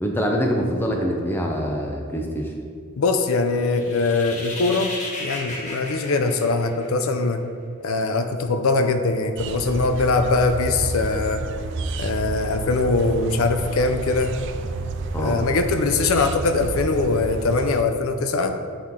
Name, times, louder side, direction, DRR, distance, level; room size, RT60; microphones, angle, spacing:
voice 1, 0.0-2.5 15.1-15.4, equal, 10° left, 0 dB, 0.6 m, -24 dB
voice 2, 3.0-4.9 5.2-7.4 7.8-11.4 12.0-14.4 15.2-18.6, left 3 dB, 80° left, 7 dB, 0.4 m, -22 dB
sound 1, 3.6-7.2, left 2 dB, 35° left, 1.0 m, -34 dB
sound 2, 9.4-17.8, right 3 dB, 55° right, 0.3 m, -30 dB
7.8 x 4.3 x 3.6 m, 2.1 s
head